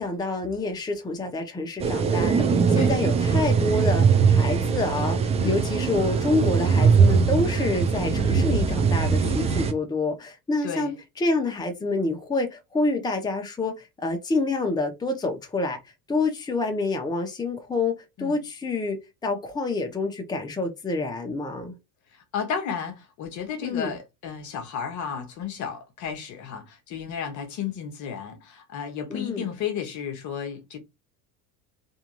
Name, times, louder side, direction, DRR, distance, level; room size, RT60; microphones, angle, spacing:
voice 1, 0.0-15.8 16.1-21.7 23.6-23.9 29.1-29.4, left 3 dB, 10° left, 0.8 m, -27 dB
sound 1, 1.8-9.7, right 5 dB, 15° right, 0.4 m, -21 dB
voice 2, 10.6-10.9 18.2-18.4 22.1-30.8, left 7 dB, 40° left, 0.9 m, -33 dB
3.5 x 2.7 x 3.0 m
figure-of-eight pair, 65°, 48 cm